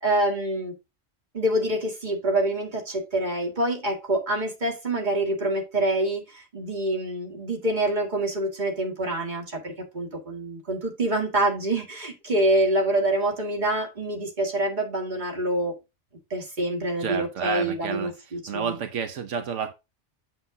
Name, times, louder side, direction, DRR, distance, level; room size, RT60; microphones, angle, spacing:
voice 1, 0.0-0.7 1.3-15.7 16.3-18.8, right 1 dB, 40° right, 2.1 m, -26 dB
voice 2, 17.0-19.7, right 6 dB, 80° right, 1.1 m, -30 dB
7.8 x 7.3 x 2.6 m
omnidirectional pair, 1.2 m